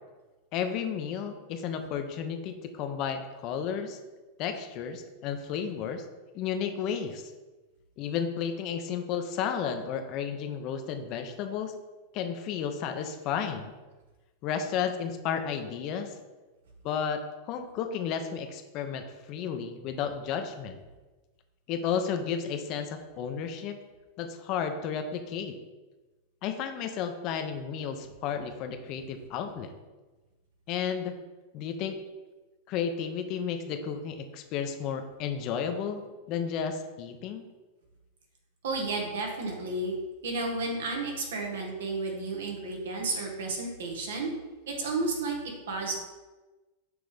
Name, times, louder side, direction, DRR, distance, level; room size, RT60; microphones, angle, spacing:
voice 1, 0.5-4.0 4.4-6.0 6.3-7.3 8.0-11.7 12.1-13.7 14.4-16.1 16.8-20.8 21.7-23.8 24.2-25.6 26.4-29.7 30.7-31.2 31.5-32.0 32.7-36.0 36.3-37.5, left 7 dB, 40° left, 7 dB, 0.6 m, -32 dB
voice 2, 38.6-39.9 40.2-44.3 44.7-45.9, right 3 dB, 85° right, 1 dB, 1.6 m, -32 dB
6.1 x 3.4 x 5.0 m, 1.2 s
supercardioid pair, 145°, 0 cm